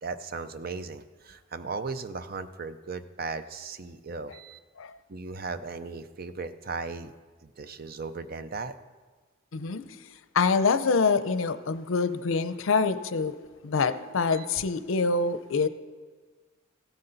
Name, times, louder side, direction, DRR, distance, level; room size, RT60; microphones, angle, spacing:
voice 1, 0.0-4.6 5.1-7.1 7.4-8.7 14.3-14.5, right 4 dB, 45° right, 11 dB, 0.5 m, -37 dB
voice 2, 9.5-13.4 13.6-15.7, left 4 dB, 80° left, 12 dB, 0.6 m, -26 dB
16.0 x 9.8 x 4.0 m, 1.4 s
head